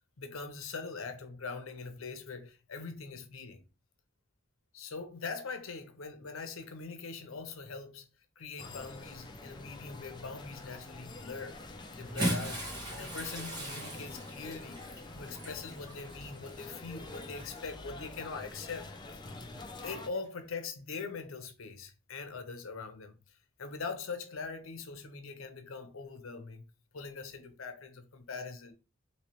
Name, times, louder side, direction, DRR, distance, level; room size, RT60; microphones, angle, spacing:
voice 1, 0.2-3.6 4.7-8.1 8.4-11.7 12.0-14.8 15.1-18.9 19.8-26.6 26.9-28.7, left 4 dB, 75° left, 0.7 m, -42 dB
sound 1, 8.6-20.1, left 2 dB, 20° left, 0.4 m, -47 dB
Bathtub (filling or washing) / Splash splatter, 12.0-17.6 18.5-18.7 20.1-20.2, right 1 dB, 20° right, 1.3 m, -38 dB
3.1 x 2.9 x 3.0 m
head